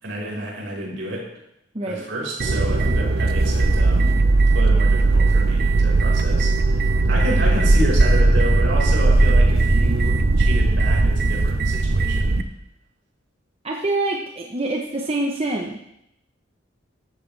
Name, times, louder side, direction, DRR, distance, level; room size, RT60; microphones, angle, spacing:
voice 1, 0.0-1.2 1.8-4.2 4.5-12.4, right 1 dB, 75° right, -3 dB, 5.2 m, -30 dB
sound 1, 2.4-12.4, right 2 dB, 55° right, 0.7 m, -18 dB
voice 2, 13.6-15.8, right 2 dB, 30° right, 0 dB, 1.1 m, -25 dB
13.5 x 13.5 x 3.5 m, 0.81 s
head